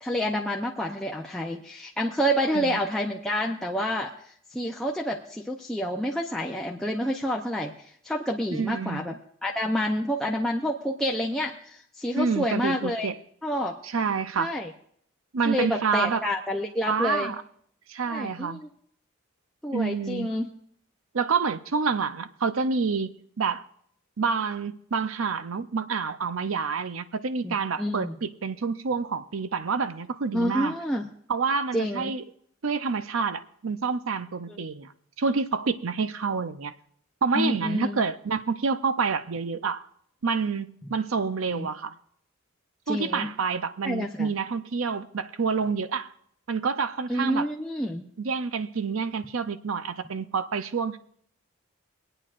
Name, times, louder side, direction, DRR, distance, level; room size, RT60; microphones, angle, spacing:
voice 1, 0.0-4.1 4.5-9.1 9.4-13.1 13.4-13.8 14.4-14.7 15.4-17.3 18.1-18.7 19.6-20.5 27.4-28.2 30.3-31.0 31.7-32.1 34.5-34.7 37.3-38.0 41.5-41.7 42.9-43.3 43.8-44.3 47.1-48.0, equal, 5° left, 0.6 m, -28 dB
voice 2, 8.5-9.0 12.2-13.1 13.8-14.5 15.3-16.2 16.9-17.4 17.9-18.6 19.7-20.3 21.1-23.1 23.4-23.6 24.2-30.7 31.3-32.2 32.6-34.9 35.2-36.7 37.2-39.9 40.2-41.9 42.9-46.1 46.5-47.5 48.2-51.0, right 5 dB, 75° right, 0.6 m, -28 dB
24.5 x 8.9 x 2.5 m
head